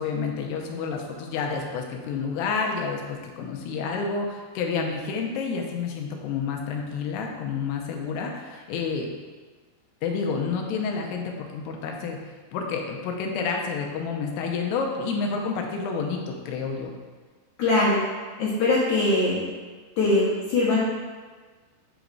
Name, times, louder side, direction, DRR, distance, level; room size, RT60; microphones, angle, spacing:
voice 1, 0.0-9.1 10.0-12.2 12.5-16.9, left 5 dB, 85° left, 1 dB, 2.8 m, -29 dB
voice 2, 17.6-18.1 18.4-19.4 20.0-20.8, left 2 dB, 65° left, -8 dB, 2.0 m, -21 dB
8.3 x 3.9 x 4.6 m, 1.4 s
omnidirectional pair, 4.8 m